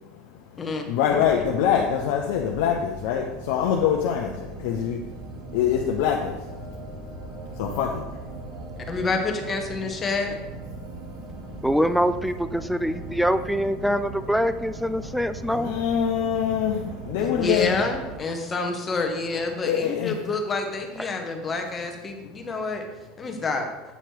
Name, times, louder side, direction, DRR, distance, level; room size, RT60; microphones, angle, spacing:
voice 1, 0.3-5.0 5.5-6.4 7.5-8.1 15.5-17.7 19.6-20.2, left 8 dB, 75° left, 1 dB, 0.6 m, -24 dB
sound 1, 1.0-18.2, right 2 dB, 55° right, 1.1 m, -39 dB
voice 2, 8.9-10.4 15.5-15.6 17.2-22.8 23.2-23.7, left 3 dB, 25° left, 4 dB, 0.9 m, -28 dB
voice 3, 11.6-15.7 21.0-21.2, equal, ahead, 12 dB, 0.3 m, -24 dB
8.2 x 2.9 x 4.6 m, 1.1 s
supercardioid pair, 115°, 0 cm